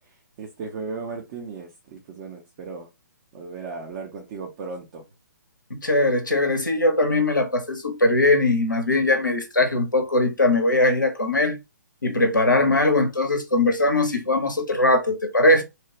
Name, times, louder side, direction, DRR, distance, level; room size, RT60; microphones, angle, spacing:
voice 1, 0.4-2.9 3.3-5.0 12.6-12.8, right 4 dB, 30° right, 0.6 m, -36 dB
voice 2, 5.7-11.6 12.0-15.6, left 2 dB, 85° left, 0.8 m, -20 dB
3.1 x 2.2 x 2.9 m
figure-of-eight pair, 130°, 10 cm